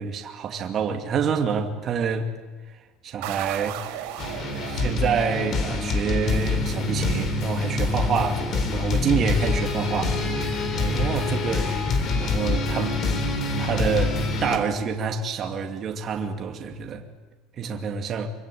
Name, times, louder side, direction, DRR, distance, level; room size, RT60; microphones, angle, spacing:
voice 1, 0.0-2.3 2.7-2.8 3.0-3.8 4.7-11.8 12.1-13.0 13.5-17.0 17.6-18.3, right 6 dB, 30° right, 2.5 m, -27 dB
sound 1, 3.2-7.7, right 11 dB, 75° right, 4.2 m, -37 dB
sound 2, 4.2-14.6, left 3 dB, 35° left, 3.8 m, -25 dB
26.0 x 25.0 x 8.7 m
cardioid pair, 160°, 0 cm